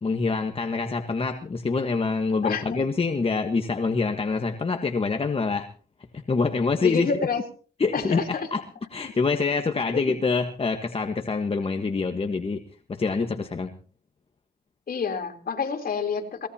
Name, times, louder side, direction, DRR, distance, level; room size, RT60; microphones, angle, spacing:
voice 1, 0.0-5.7 6.3-7.1 7.8-8.6 8.9-12.6 12.9-13.7, left 4 dB, 30° left, 5 dB, 1.4 m, -25 dB
voice 2, 2.4-2.8 6.8-7.4 7.9-8.5 9.9-10.1 14.9-16.5, left 5 dB, 50° left, 3 dB, 3.7 m, -28 dB
23.0 x 19.0 x 2.9 m, 0.42 s
cardioid pair, 90°, 20 cm